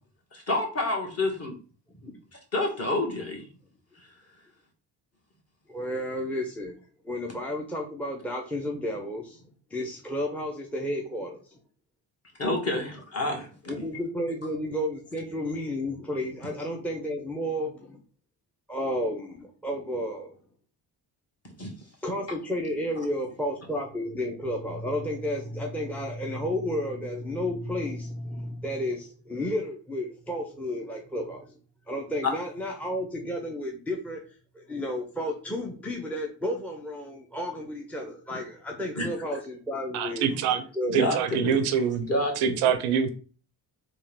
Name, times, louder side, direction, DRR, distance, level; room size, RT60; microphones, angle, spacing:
voice 1, 0.3-1.5 2.0-2.1 2.5-3.4 12.4-13.8 21.6-21.7 32.2-32.3 39.0-39.1 40.3-40.4 40.9-41.7 42.1-42.7, left 2 dB, 30° left, 0 dB, 1.7 m, -28 dB
voice 2, 5.7-6.8 7.0-9.4 9.7-11.6 13.7-18.0 18.7-20.4 22.0-31.6 31.9-34.2 34.5-40.2 40.7-41.0, left 1 dB, 5° left, 0 dB, 0.7 m, -32 dB
voice 3, 39.9-40.6 40.9-42.1 42.4-43.1, right 8 dB, 80° right, 10 dB, 0.6 m, -25 dB
3.6 x 2.5 x 3.6 m, 0.39 s
hypercardioid pair, 50°, 49 cm